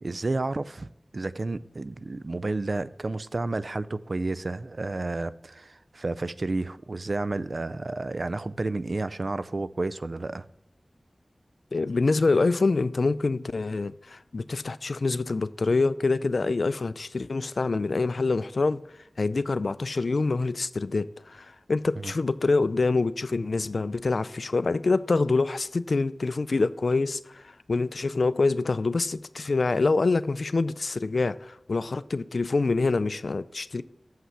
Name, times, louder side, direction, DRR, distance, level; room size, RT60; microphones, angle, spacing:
voice 1, 0.0-10.4 22.0-22.1, right 2 dB, 65° right, 0.4 m, -31 dB
voice 2, 11.7-18.8 19.2-33.8, left 3 dB, 80° left, 0.3 m, -26 dB
7.4 x 5.7 x 5.5 m
cardioid pair, 40°, 0 cm